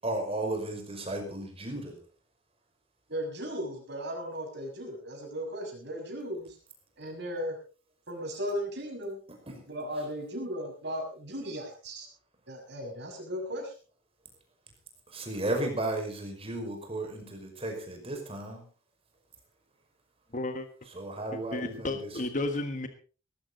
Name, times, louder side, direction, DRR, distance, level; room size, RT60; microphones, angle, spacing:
voice 1, 0.0-2.0 15.1-18.6 20.9-22.0, right 2 dB, 30° right, 4 dB, 5.5 m, -34 dB
voice 2, 3.1-6.6 7.0-7.6 8.1-9.2 9.7-12.1 12.5-13.7, equal, 60° right, 2 dB, 6.8 m, -36 dB
voice 3, 20.3-20.7 21.3-22.9, left 2 dB, 40° left, 7 dB, 1.5 m, -33 dB
19.0 x 14.5 x 4.0 m, 0.37 s
head